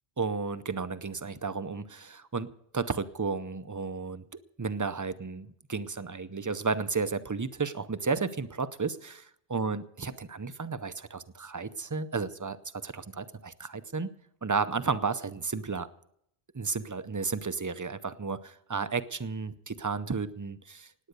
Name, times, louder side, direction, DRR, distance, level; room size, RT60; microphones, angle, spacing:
voice 1, 0.2-4.2 4.6-9.3 9.5-14.1 14.4-15.9 16.5-20.9, right 4 dB, 25° right, 13 dB, 0.5 m, -33 dB
18.0 x 9.2 x 6.7 m, 0.72 s
omnidirectional pair, 1.0 m